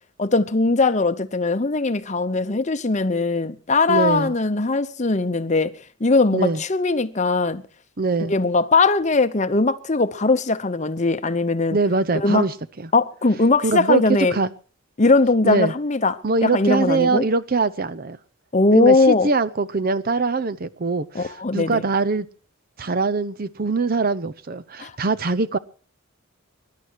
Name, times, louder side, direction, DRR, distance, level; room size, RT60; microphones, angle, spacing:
voice 1, 0.2-5.7 6.0-7.6 8.2-11.8 12.1-12.5 12.9-14.4 15.0-17.3 18.5-19.3 21.1-21.8 24.8-24.9, left 3 dB, 35° left, 0.8 m, -20 dB
voice 2, 3.9-4.3 6.3-6.6 8.0-8.3 11.7-12.5 13.6-14.0 14.3-14.5 15.4-15.7 16.2-18.2 18.7-22.3 22.8-25.6, right 3 dB, 45° right, 0.7 m, -22 dB
23.0 x 11.5 x 4.6 m
head